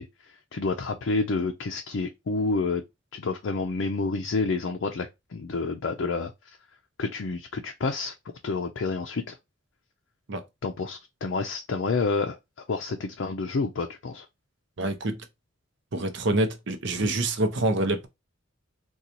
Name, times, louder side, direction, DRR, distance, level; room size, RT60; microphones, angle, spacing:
voice 1, 0.0-2.8 3.1-6.6 7.0-8.1 8.4-9.4 10.6-12.4 12.7-14.3, left 3 dB, 65° left, 0.4 m, -29 dB
voice 2, 14.8-15.2 15.9-18.1, right 2 dB, 65° right, 0.7 m, -26 dB
3.8 x 2.3 x 2.9 m
head